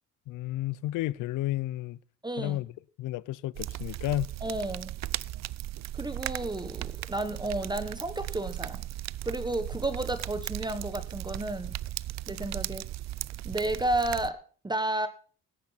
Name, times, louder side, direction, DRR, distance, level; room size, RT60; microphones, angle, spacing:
voice 1, 0.3-2.0 2.4-2.7 3.0-4.3, left 15 dB, 85° left, 0.6 m, -32 dB
voice 2, 2.2-2.6 4.4-4.9 5.9-8.8 9.2-11.7 12.3-12.8 13.4-15.1, right 1 dB, 15° right, 1.2 m, -32 dB
sound 1, 3.6-14.3, right 15 dB, 60° right, 0.5 m, -37 dB
16.5 x 12.0 x 4.1 m
cardioid pair, 90°, 30 cm